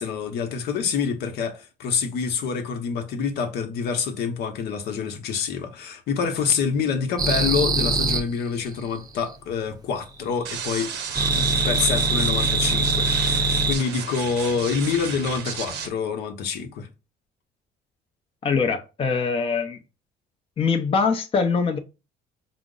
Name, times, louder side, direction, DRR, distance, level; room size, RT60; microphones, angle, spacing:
voice 1, 0.0-10.9 11.3-16.9, left 6 dB, 75° left, 0.8 m, -27 dB
sound 1, 7.2-8.2 11.1-13.8, right 2 dB, 20° right, 0.6 m, -22 dB
sound 2, 10.4-15.9, right 7 dB, 85° right, 0.8 m, -33 dB
voice 2, 18.4-19.8 20.6-21.8, left 5 dB, 35° left, 0.6 m, -23 dB
4.9 x 2.0 x 3.7 m
cardioid pair, 110°, 17 cm